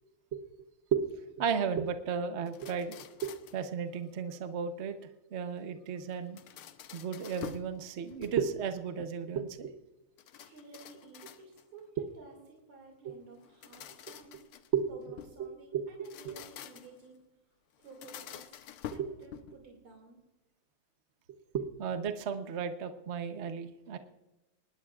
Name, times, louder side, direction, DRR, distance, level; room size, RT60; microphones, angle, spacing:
voice 1, 1.3-3.0 3.2-4.9 5.3-6.4 6.9-9.7 13.0-13.1 14.7-14.9 15.7-15.8 19.0-19.1 21.5-24.0, right 7 dB, 50° right, 7 dB, 0.9 m, -33 dB
sound 1, 2.5-3.7 6.1-7.7 8.1-8.7 10.2-11.8 13.4-15.4 15.9-17.1 17.8-19.7, left 10 dB, 85° left, 1.7 m, -48 dB
voice 2, 10.4-14.4 14.9-17.3 17.8-18.6 18.9-20.2, right 4 dB, 75° right, 1 dB, 3.4 m, -53 dB
21.5 x 19.0 x 2.5 m, 1.0 s
omnidirectional pair, 2.4 m